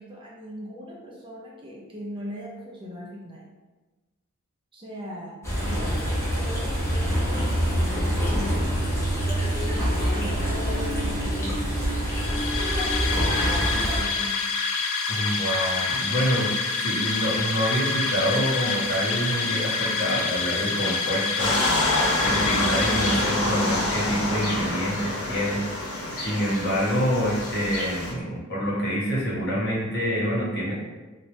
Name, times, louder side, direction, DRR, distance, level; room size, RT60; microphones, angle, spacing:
voice 1, 0.0-3.4 4.7-5.3 5.6-8.9 9.7-12.0 13.1-14.4, equal, 25° right, -4 dB, 0.6 m, -39 dB
sound 1, 5.4-14.0, equal, 10° left, 0.8 m, -25 dB
sound 2, 12.0-23.9, left 4 dB, 65° left, 0.4 m, -27 dB
voice 2, 15.1-16.5 16.8-21.6 22.2-25.9 26.1-30.7, equal, 50° left, -7 dB, 1.1 m, -26 dB
sound 3, 21.4-28.1, left 1 dB, 90° left, 0.8 m, -27 dB
3.0 x 2.7 x 3.1 m, 1.2 s
head